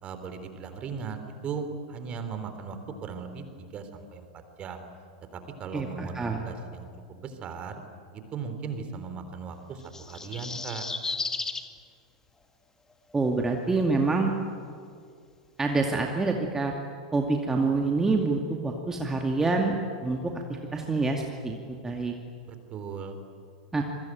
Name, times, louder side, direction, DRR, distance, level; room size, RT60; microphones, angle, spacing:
voice 1, 0.0-2.8 3.0-3.4 3.7-4.3 4.6-4.8 5.3-6.2 6.5-7.8 8.1-10.9 22.5-23.1, right 6 dB, 30° right, 8 dB, 3.7 m, -37 dB
voice 2, 5.7-6.4 13.1-14.3 15.6-16.7 17.1-19.8 20.0-22.1 23.7-23.8, right 3 dB, 15° right, 2 dB, 2.3 m, -27 dB
sound 1, 9.8-11.7 13.1-13.2, left 4 dB, 15° left, 1.9 m, -33 dB
26.5 x 23.0 x 9.3 m, 2.3 s
figure-of-eight pair, 90°, 4 cm